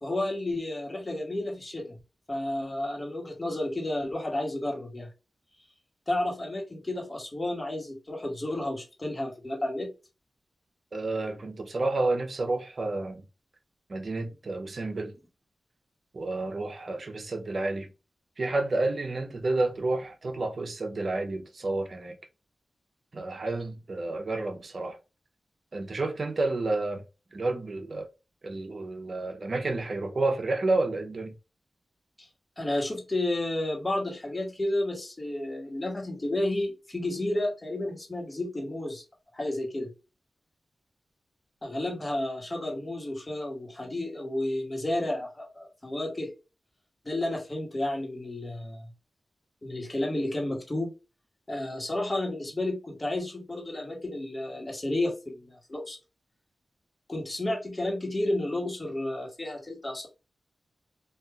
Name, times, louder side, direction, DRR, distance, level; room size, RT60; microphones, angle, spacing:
voice 1, 0.0-2.0 2.3-5.1 6.1-9.9 32.2-32.3 32.6-39.0 39.3-39.9 41.6-46.3 47.0-48.9 49.6-50.9 51.5-56.0 57.1-60.1, left 1 dB, 30° left, 1.3 m, -31 dB
voice 2, 10.9-13.3 13.9-15.1 16.1-17.9 18.4-22.2 23.1-25.0 25.7-27.0 27.3-28.1 28.4-31.3, right 2 dB, 55° right, 0.7 m, -30 dB
3.3 x 2.5 x 2.3 m
cardioid pair, 60°, 0 cm